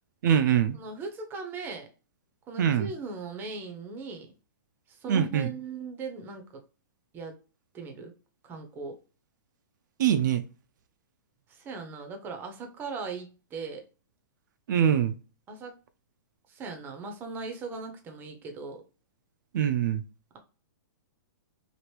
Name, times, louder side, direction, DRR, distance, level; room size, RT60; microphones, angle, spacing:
voice 1, 0.2-0.8 2.6-2.9 5.1-5.5 10.0-10.4 14.7-15.1 19.5-20.0, right 9 dB, 60° right, 0.4 m, -23 dB
voice 2, 0.7-1.9 2.5-4.3 4.9-6.6 7.1-7.4 7.7-8.1 8.4-9.0 11.5-13.8 15.5-15.8 16.5-18.8, right 4 dB, 15° right, 0.6 m, -39 dB
2.9 x 2.5 x 3.1 m
hypercardioid pair, 155°, 11 cm